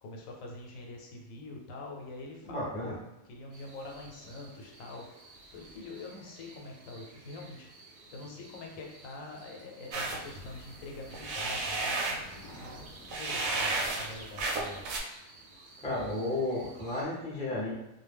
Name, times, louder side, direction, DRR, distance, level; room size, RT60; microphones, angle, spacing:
voice 1, 0.0-2.9 3.2-7.7 8.1-14.8, left 2 dB, 80° left, 0 dB, 1.0 m, -45 dB
voice 2, 2.4-2.9 15.8-17.7, left 2 dB, 10° left, -6 dB, 0.4 m, -33 dB
sound 1, 3.5-17.0, right 2 dB, 50° right, 0.7 m, -54 dB
sound 2, 9.9-15.0, right 2 dB, 80° right, 1.0 m, -33 dB
2.4 x 2.1 x 3.3 m, 0.93 s
omnidirectional pair, 1.4 m